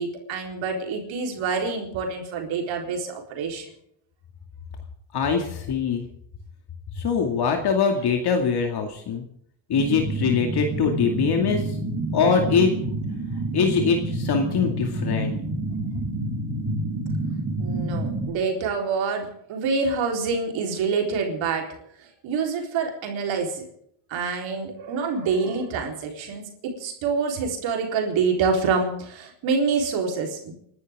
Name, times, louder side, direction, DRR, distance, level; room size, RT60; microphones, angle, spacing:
voice 1, 0.0-3.6 17.6-21.7 22.2-23.6 24.1-30.5, right 5 dB, 80° right, 2 dB, 4.1 m, -26 dB
voice 2, 5.1-6.1 7.0-9.2 9.7-11.8 12.1-12.7 13.5-15.3, left 6 dB, 55° left, 3 dB, 2.4 m, -23 dB
sound 1, 9.7-18.3, right 2 dB, 40° right, 4.6 m, -28 dB
30.0 x 12.0 x 3.7 m, 0.69 s
cardioid pair, 105°, 45 cm